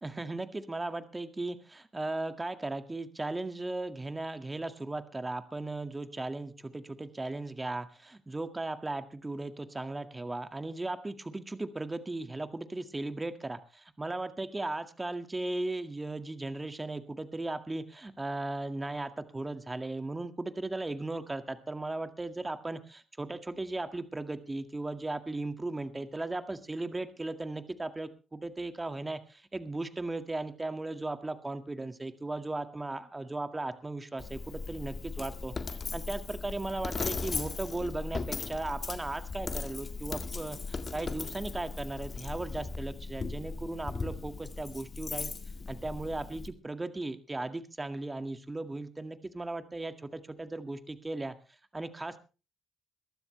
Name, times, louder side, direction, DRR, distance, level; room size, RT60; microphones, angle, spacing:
voice 1, 0.0-45.3 45.7-51.3 51.7-52.2, right 2 dB, 20° right, 9 dB, 1.9 m, -37 dB
Coin (dropping), 34.2-46.5, left 4 dB, 40° left, 1.8 m, -38 dB
22.0 x 12.5 x 3.3 m, 0.34 s
hypercardioid pair, 45°, 0 cm